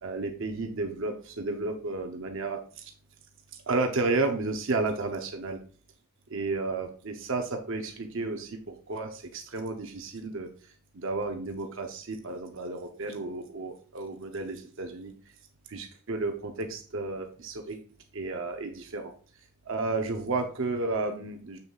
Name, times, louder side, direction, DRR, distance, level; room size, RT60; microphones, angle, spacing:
voice 1, 0.0-2.9 3.7-5.6 6.3-10.5 10.9-15.1 15.7-17.8 18.1-19.1 19.7-21.6, right 3 dB, 60° right, 4 dB, 0.7 m, -32 dB
6.9 x 6.6 x 2.4 m, 0.43 s
head